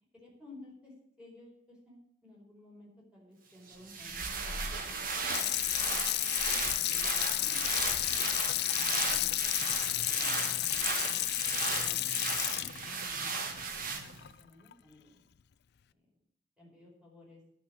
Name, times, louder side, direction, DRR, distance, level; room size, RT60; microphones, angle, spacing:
voice 1, 0.2-0.9 1.2-1.6 1.8-4.5 4.8-5.3 5.5-6.2 6.8-7.5 8.0-11.2 11.7-13.9 14.4-15.2 16.6-17.4, left 2 dB, 5° right, -4 dB, 4.7 m, -55 dB
sound 1, 3.7-14.3, right 4 dB, 45° right, 1.5 m, -36 dB
Water tap faucet / Sink (filling or washing), 5.1-14.3 14.7-14.8, left 16 dB, 55° left, 0.4 m, -32 dB
10.5 x 6.2 x 8.6 m, 0.75 s
head